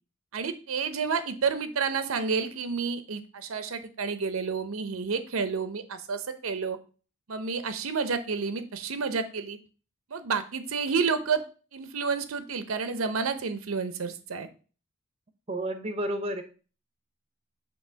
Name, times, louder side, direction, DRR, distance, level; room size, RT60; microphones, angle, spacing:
voice 1, 0.3-6.8 7.3-9.6 10.1-11.4 11.7-14.5, right 5 dB, 80° right, 10 dB, 0.7 m, -30 dB
voice 2, 15.5-16.4, right 1 dB, 30° right, 8 dB, 0.7 m, -31 dB
6.0 x 2.9 x 5.6 m, 0.36 s
head